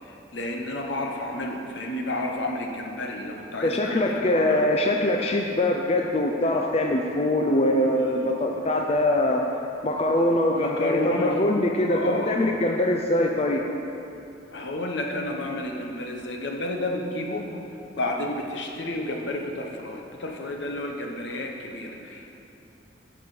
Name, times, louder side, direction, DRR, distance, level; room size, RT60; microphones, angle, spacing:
voice 1, 0.1-4.7 7.9-8.3 10.6-11.5 11.9-12.4 14.5-17.5 18.0-22.4, left 1 dB, 70° left, 2 dB, 1.0 m, -31 dB
voice 2, 3.6-9.4 9.8-13.7, left 1 dB, 30° left, 1 dB, 0.5 m, -23 dB
10.5 x 7.1 x 4.9 m, 2.8 s
head